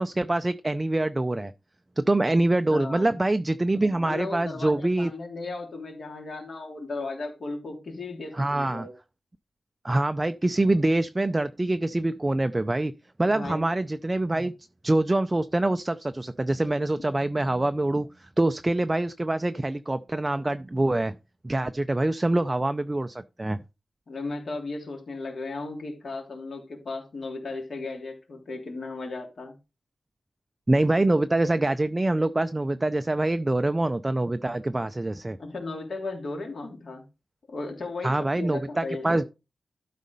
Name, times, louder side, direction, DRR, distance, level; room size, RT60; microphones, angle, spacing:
voice 1, 0.0-1.5 2.0-5.1 8.3-8.9 9.8-12.9 13.2-14.5 14.8-21.1 21.4-23.6 30.7-35.4 38.0-39.2, right 2 dB, 15° right, 0.4 m, -25 dB
voice 2, 2.7-3.2 4.0-8.9 13.3-13.7 17.0-17.1 24.1-29.6 35.4-37.0 37.5-39.2, left 3 dB, 55° left, 3.3 m, -35 dB
12.5 x 4.2 x 5.3 m
wide cardioid pair, 145°, 0 cm